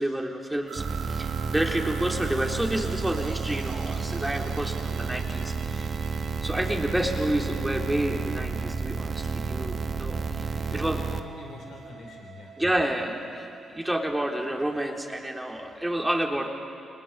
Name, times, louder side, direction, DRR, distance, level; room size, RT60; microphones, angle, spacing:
voice 1, 0.0-6.0 6.4-10.5 10.7-11.0 12.6-16.5, right 1 dB, 10° right, 2 dB, 3.7 m, -29 dB
sound 1, 0.7-15.3, right 8 dB, 80° right, 2.3 m, -46 dB
sound 2, 0.8-11.2, right 5 dB, 45° right, 1.4 m, -31 dB
voice 2, 10.5-12.5, left 4 dB, 65° left, 2 dB, 3.1 m, -44 dB
26.5 x 20.0 x 8.7 m, 2.5 s
supercardioid pair, 55°, 0 cm